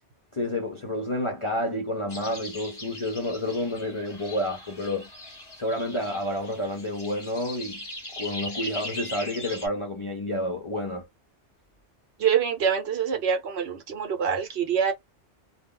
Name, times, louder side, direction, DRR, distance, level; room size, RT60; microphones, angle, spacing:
voice 1, 0.3-5.1 5.6-7.8 8.2-11.1, left 1 dB, 40° left, 0.4 m, -29 dB
sound 1, 2.1-9.7, left 1 dB, 25° left, 0.9 m, -40 dB
voice 2, 12.2-14.9, right 7 dB, 65° right, 0.9 m, -25 dB
2.3 x 2.1 x 3.6 m
omnidirectional pair, 1.2 m